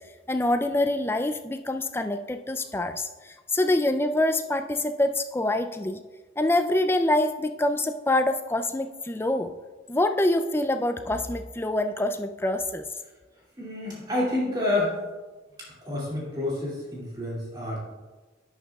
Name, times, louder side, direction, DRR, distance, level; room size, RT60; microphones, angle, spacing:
voice 1, 0.3-6.0 6.4-9.5 9.9-12.8, left 1 dB, 10° left, 7 dB, 0.4 m, -25 dB
voice 2, 13.6-15.0 15.6-17.8, left 1 dB, 20° right, -5 dB, 2.4 m, -29 dB
11.0 x 9.4 x 2.3 m, 1.3 s
head